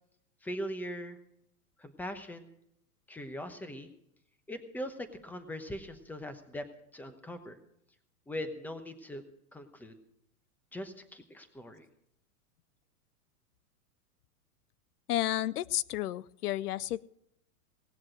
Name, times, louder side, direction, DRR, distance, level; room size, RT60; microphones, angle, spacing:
voice 1, 0.4-1.2 1.8-2.5 3.1-3.9 4.5-6.6 6.9-7.6 8.3-9.2 9.5-10.0 10.7-11.9, equal, 5° left, 9 dB, 1.0 m, -40 dB
voice 2, 15.1-17.0, left 14 dB, 85° left, 21 dB, 0.6 m, -32 dB
18.0 x 7.4 x 7.8 m, 0.75 s
supercardioid pair, 140°, 45 cm